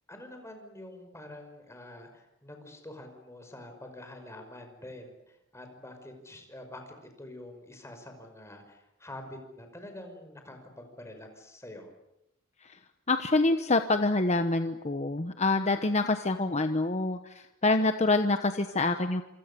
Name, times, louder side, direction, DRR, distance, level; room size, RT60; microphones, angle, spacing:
voice 1, 0.1-11.9, left 1 dB, 15° left, 5 dB, 5.5 m, -46 dB
voice 2, 13.1-19.2, left 2 dB, 35° left, 8 dB, 1.1 m, -26 dB
27.5 x 26.0 x 7.0 m, 0.84 s
head